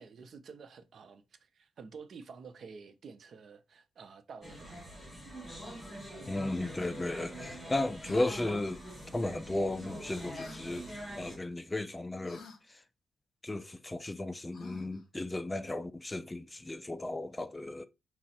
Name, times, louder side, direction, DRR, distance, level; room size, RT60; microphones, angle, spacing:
voice 1, 0.0-4.8, right 5 dB, 55° right, 0.5 m, -50 dB
sound 1, 4.4-11.4, equal, ahead, 2.1 m, -44 dB
voice 2, 6.3-8.8 9.1-10.9 11.2-12.4 12.7-12.8 13.4-17.9, left 2 dB, 15° left, 0.3 m, -35 dB
sound 2, 8.0-8.4 10.4-10.6 12.3-12.6 14.5-15.0, left 4 dB, 60° left, 0.9 m, -50 dB
4.7 x 2.0 x 4.2 m
cardioid pair, 125°, 0 cm